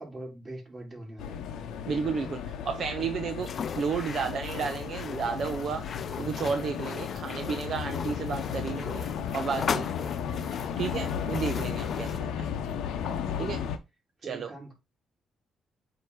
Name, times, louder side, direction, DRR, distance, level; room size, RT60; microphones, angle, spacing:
voice 1, 0.0-1.4 12.6-12.9 13.3-13.7 14.2-14.7, right 2 dB, 25° right, 3.7 m, -43 dB
sound 1, 1.2-13.8, left 8 dB, 85° left, 0.8 m, -34 dB
voice 2, 1.9-5.9 6.2-9.1 9.3-9.9 10.8-12.5 13.4-13.6 14.2-14.5, right 6 dB, 60° right, 0.6 m, -32 dB
sound 2, 3.4-12.2, left 6 dB, 50° left, 0.4 m, -38 dB
7.9 x 2.8 x 4.7 m
cardioid pair, 90°, 0 cm